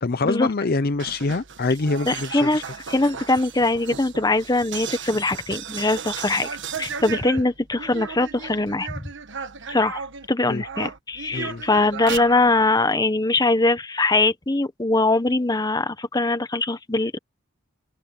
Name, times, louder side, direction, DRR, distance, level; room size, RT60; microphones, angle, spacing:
voice 1, 0.0-2.6 10.5-10.6 11.3-11.6, left 3 dB, 45° left, 0.6 m, -25 dB
sound 1, 0.9-10.3 10.6-12.7, right 6 dB, 60° right, 1.4 m, -35 dB
voice 2, 2.0-6.5 6.8-9.0 9.7-10.0 10.3-17.2, left 2 dB, 20° left, 1.0 m, -22 dB
head